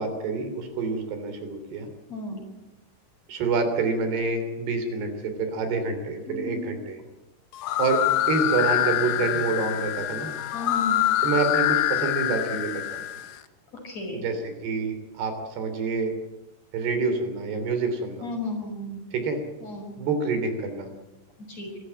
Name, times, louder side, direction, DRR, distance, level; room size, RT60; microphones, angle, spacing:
voice 1, 0.0-1.9 3.3-7.0 7.8-10.3 11.2-13.0 14.1-16.1 16.7-18.3 19.1-19.4 20.0-20.9, right 4 dB, 70° right, 7 dB, 5.1 m, -27 dB
voice 2, 2.1-2.5 6.3-6.7 10.5-11.0 13.8-14.2 18.2-19.0 19.6-19.9 21.5-21.7, left 2 dB, 40° left, 2 dB, 6.9 m, -33 dB
sound 1, 7.5-13.3, left 13 dB, 70° left, 2.0 m, -25 dB
24.5 x 15.5 x 9.0 m, 0.97 s
omnidirectional pair, 4.8 m